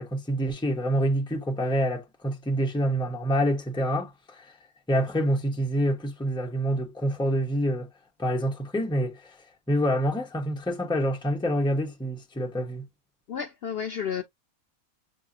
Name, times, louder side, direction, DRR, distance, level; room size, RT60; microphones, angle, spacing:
voice 1, 0.0-4.4 4.9-7.9 8.2-9.2 9.7-12.9, equal, 5° left, 0.8 m, -27 dB
voice 2, 13.3-14.2, left 7 dB, 55° left, 0.7 m, -31 dB
7.3 x 2.7 x 2.5 m
omnidirectional pair, 1.4 m